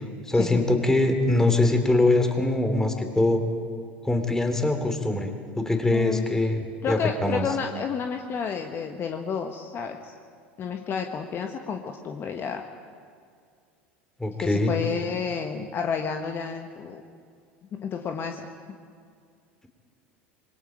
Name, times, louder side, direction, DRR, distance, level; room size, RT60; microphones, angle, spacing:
voice 1, 0.3-3.4 4.0-7.4 14.2-14.7, left 2 dB, 10° left, 6 dB, 3.0 m, -23 dB
voice 2, 5.9-6.2 6.8-10.1 10.6-12.6 14.4-17.0 17.7-18.8, left 6 dB, 35° left, 4 dB, 1.4 m, -31 dB
26.5 x 22.0 x 5.1 m, 2.2 s
figure-of-eight pair, 75°, 6 cm